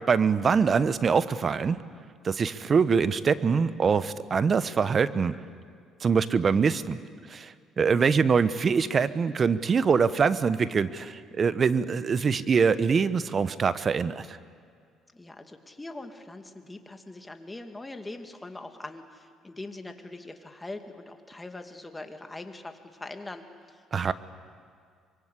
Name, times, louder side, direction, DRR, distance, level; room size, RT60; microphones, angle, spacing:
voice 1, 0.1-1.8 2.2-5.3 6.0-7.0 7.3-14.4 23.9-24.1, right 5 dB, 45° right, 14 dB, 1.0 m, -24 dB
voice 2, 15.1-24.1, left 2 dB, 15° left, 6 dB, 2.4 m, -42 dB
24.5 x 23.0 x 8.4 m, 2.1 s
supercardioid pair, 65°, 0 cm